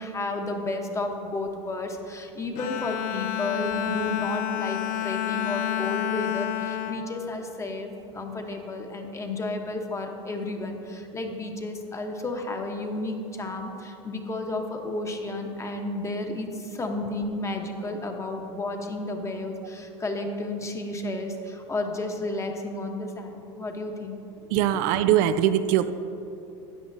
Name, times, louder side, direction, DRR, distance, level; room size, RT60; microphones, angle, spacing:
voice 1, 0.0-7.9 8.1-24.2, left 2 dB, 20° left, 3 dB, 1.1 m, -32 dB
Bowed string instrument, 2.5-8.1, left 11 dB, 60° left, 0.6 m, -30 dB
voice 2, 24.5-25.9, right 11 dB, 65° right, 12 dB, 0.4 m, -21 dB
12.5 x 9.3 x 2.7 m, 2.9 s
supercardioid pair, 100°, 15 cm